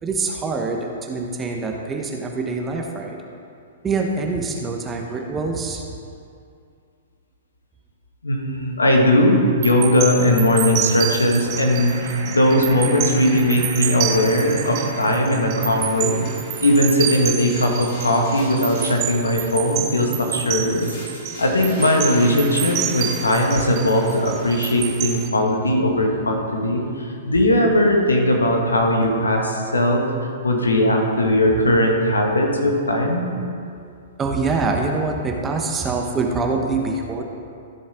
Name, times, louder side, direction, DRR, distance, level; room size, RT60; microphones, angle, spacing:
voice 1, 0.0-3.2 3.8-5.8 23.6-23.7 33.8-33.9 34.2-37.2, right 3 dB, 20° right, 2 dB, 1.1 m, -25 dB
voice 2, 8.2-16.2 16.6-21.0 21.4-30.0 30.4-33.3, left 1 dB, 80° left, 1 dB, 1.7 m, -19 dB
sound 1, 9.6-25.3, right 10 dB, 35° right, 0.8 m, -29 dB
sound 2, 11.4-16.8, right 4 dB, 60° right, 1.4 m, -36 dB
sound 3, 12.8-18.9 20.8-27.0, left 1 dB, 55° left, 2.6 m, -42 dB
14.5 x 6.9 x 3.7 m, 2.4 s
figure-of-eight pair, 110°, 0 cm